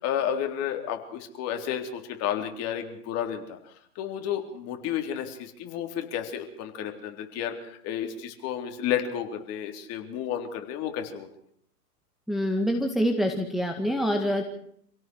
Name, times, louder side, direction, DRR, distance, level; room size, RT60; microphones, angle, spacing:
voice 1, 0.0-3.6 4.0-11.3, left 9 dB, 30° left, 5 dB, 3.8 m, -31 dB
voice 2, 12.3-14.4, equal, ahead, 2 dB, 1.9 m, -26 dB
27.5 x 17.0 x 6.4 m, 0.66 s
hypercardioid pair, 130°, 46 cm